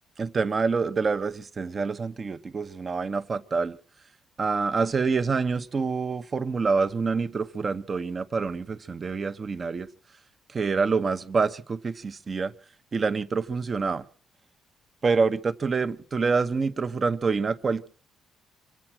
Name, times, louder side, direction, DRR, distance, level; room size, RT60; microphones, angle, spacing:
voice 1, 0.2-3.8 4.4-9.9 10.5-12.5 12.9-14.0 15.0-17.9, right 4 dB, 40° right, 11 dB, 1.0 m, -26 dB
25.0 x 8.9 x 6.1 m, 0.42 s
cardioid pair, 90°, 0 cm